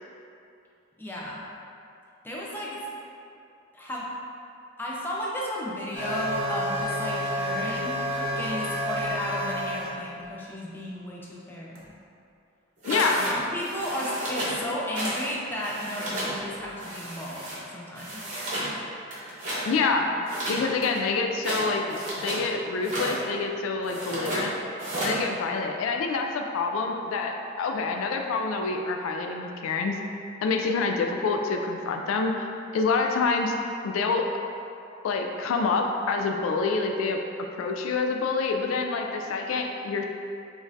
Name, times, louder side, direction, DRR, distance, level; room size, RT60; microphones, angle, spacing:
voice 1, 1.0-1.4 2.2-2.8 3.7-4.1 4.8-8.0 8.4-11.9 12.9-17.5 17.7-18.2, equal, 10° left, -5 dB, 0.4 m, -34 dB
sound 1, 5.9-9.9 11.8-11.9 16.6-16.7, equal, 65° right, 0.8 m, -30 dB
voice 2, 12.8-13.3 19.6-20.1 20.5-24.5 25.0-30.0 30.4-32.5 32.7-33.6 33.8-34.3 35.0-37.2 37.5-40.0, left 4 dB, 75° left, 3 dB, 0.3 m, -27 dB
sound 2, 12.8-13.3 13.6-14.6 14.9-15.3 15.5-16.3 16.8-17.6 18.0-18.7 19.1-19.7 20.2-22.4 22.8-23.2 23.8-24.4 24.8-25.2, right 1 dB, 40° right, 0.9 m, -32 dB
5.1 x 2.5 x 2.6 m, 2.6 s
head